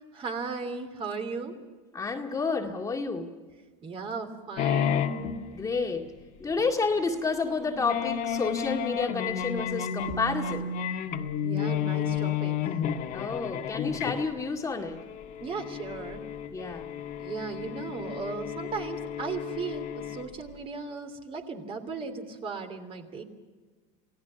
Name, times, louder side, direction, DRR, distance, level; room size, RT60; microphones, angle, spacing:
voice 1, 0.1-1.6 3.8-5.1 11.4-12.8 15.4-16.2 17.2-23.2, right 4 dB, 35° right, 6 dB, 3.1 m, -36 dB
voice 2, 1.9-3.3 5.5-6.1 6.4-10.7 13.1-15.0 16.5-16.9, left 4 dB, 20° left, 2 dB, 2.1 m, -30 dB
sound 1, 4.6-6.1 6.6-6.7 6.9-7.1 7.7-20.4, left 8 dB, 50° left, 1.8 m, -32 dB
28.0 x 17.5 x 5.9 m, 1.4 s
supercardioid pair, 120°, 17 cm